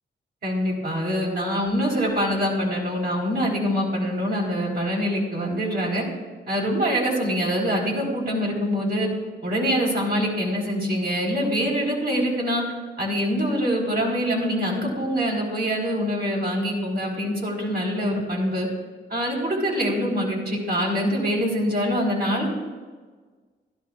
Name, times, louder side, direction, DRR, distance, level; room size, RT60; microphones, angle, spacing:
voice 1, 0.4-6.0 6.5-9.1 9.4-12.6 13.0-18.7 19.1-22.5, equal, 55° right, -3 dB, 4.2 m, -24 dB
15.5 x 13.5 x 2.4 m, 1.4 s
cardioid pair, 65°, 19 cm